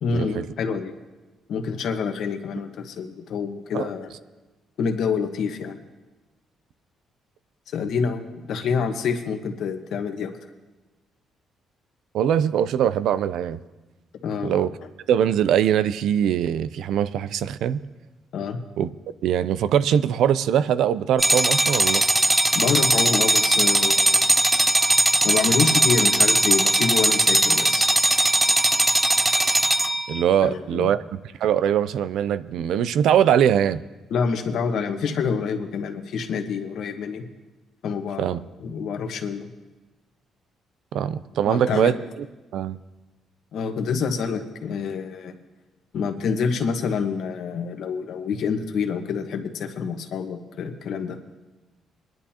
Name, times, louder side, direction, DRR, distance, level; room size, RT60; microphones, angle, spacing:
voice 1, 0.0-0.9 1.5-4.1 4.8-5.8 7.7-8.2 8.5-10.3 14.2-14.7 18.3-18.6 22.5-24.2 25.2-27.9 30.4-30.9 34.1-37.2 37.8-39.5 41.4-41.9 43.5-45.3 45.9-51.2, left 6 dB, 70° left, 5 dB, 1.3 m, -27 dB
voice 2, 12.1-13.6 14.4-14.7 15.1-17.8 18.8-18.9 19.2-22.0 30.1-31.0 31.4-33.8 38.2-38.4 40.9-41.9 42.5-42.8, right 9 dB, 75° right, 16 dB, 0.4 m, -22 dB
sound 1, 21.2-30.2, right 1 dB, 15° right, 0.4 m, -19 dB
22.5 x 11.0 x 2.9 m, 1.2 s
cardioid pair, 110°, 0 cm